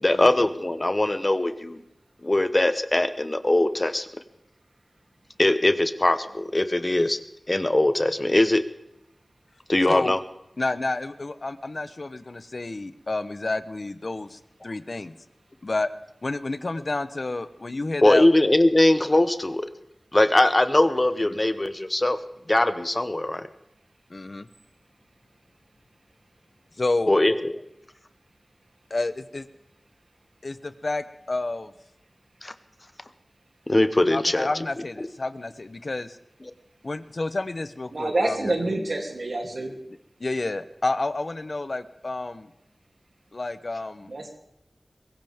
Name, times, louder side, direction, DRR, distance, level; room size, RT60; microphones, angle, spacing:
voice 1, 0.0-1.8 2.2-4.1 5.4-7.2 7.5-8.6 9.7-10.2 18.0-19.6 20.1-22.2 22.5-23.5 27.1-27.5 32.4-32.5 33.7-34.5, left 1 dB, 35° left, 11 dB, 0.9 m, -21 dB
voice 2, 10.6-15.1 15.6-15.9 16.2-18.3 21.2-21.4 24.1-24.5 26.8-27.2 28.9-29.5 30.4-31.7 34.1-36.2 36.8-38.5 40.2-42.5 43.3-44.1, left 2 dB, 60° left, 13 dB, 0.8 m, -30 dB
voice 3, 37.9-39.7 44.1-44.3, right 2 dB, 80° right, 1 dB, 2.9 m, -27 dB
22.5 x 15.0 x 3.6 m, 0.83 s
wide cardioid pair, 70°, 0 cm